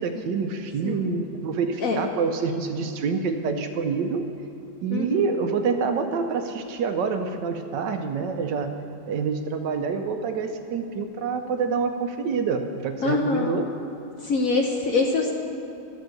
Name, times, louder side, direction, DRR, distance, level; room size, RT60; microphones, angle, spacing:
voice 1, 0.0-4.3 4.8-8.7 9.1-13.7, right 5 dB, 75° right, 7 dB, 1.2 m, -27 dB
voice 2, 4.9-5.3 13.0-13.6 14.2-15.3, left 3 dB, 60° left, 1 dB, 0.9 m, -24 dB
12.5 x 5.2 x 7.6 m, 2.7 s
omnidirectional pair, 2.1 m